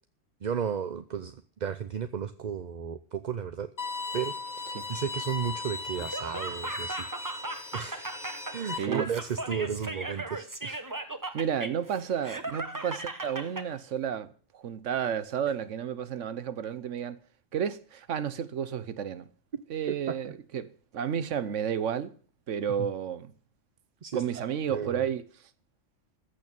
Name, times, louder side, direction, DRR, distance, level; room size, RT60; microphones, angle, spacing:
voice 1, 0.4-3.7 4.1-8.1 8.5-10.8 19.9-20.3 22.8-22.9 24.0-25.1, right 7 dB, 45° right, 0.7 m, -34 dB
Bowed string instrument, 3.8-8.8, left 3 dB, 35° left, 1.6 m, -37 dB
Laughter, 6.0-13.7, right 2 dB, 15° right, 1.0 m, -37 dB
voice 2, 11.3-17.2 17.5-19.3 19.7-22.1 22.5-23.3 24.1-25.2, right 8 dB, 85° right, 1.2 m, -32 dB
14.5 x 6.5 x 8.9 m
omnidirectional pair, 1.3 m